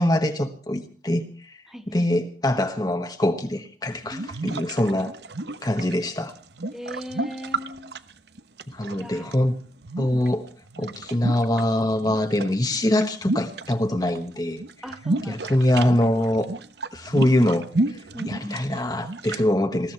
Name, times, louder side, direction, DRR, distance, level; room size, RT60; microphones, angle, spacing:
voice 1, 0.0-1.5 1.9-5.1 5.6-6.3 8.7-9.6 10.0-10.4 10.8-14.6 15.3-16.5 16.9-18.0 18.3-19.9, left 1 dB, 20° left, 1.2 m, -23 dB
voice 2, 1.7-2.1 4.0-4.6 6.7-7.9 9.0-9.5 10.8-11.0 14.8-15.4 18.1-18.6, equal, ahead, 1.3 m, -38 dB
sound 1, 3.9-9.3 9.8-11.6 11.9-14.2 14.4-19.4, right 2 dB, 65° right, 1.0 m, -32 dB
20.5 x 15.0 x 4.4 m
head